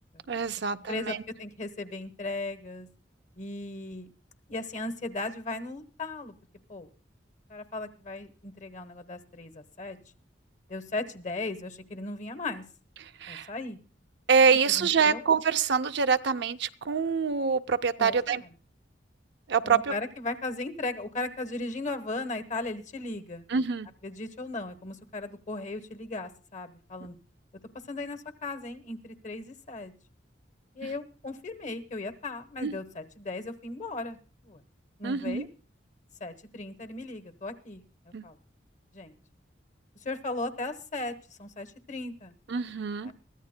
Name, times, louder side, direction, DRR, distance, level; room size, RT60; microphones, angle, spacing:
voice 1, 0.3-1.2 13.0-13.5 14.3-18.4 19.5-19.9 23.5-23.9 32.6-32.8 35.0-35.5 38.1-38.2 42.5-43.1, right 6 dB, 65° right, 10 dB, 0.5 m, -25 dB
voice 2, 0.9-2.9 3.4-4.1 4.5-6.3 6.7-6.9 7.5-10.0 10.7-12.6 13.3-13.8 14.8-15.2 18.0-18.5 19.6-23.5 24.0-27.2 27.9-29.9 30.7-34.2 34.4-34.6 35.0-35.5 36.2-38.4 38.9-39.2 40.0-42.3 43.0-43.1, left 2 dB, 45° left, 10 dB, 1.1 m, -37 dB
23.0 x 14.0 x 2.2 m, 0.38 s
head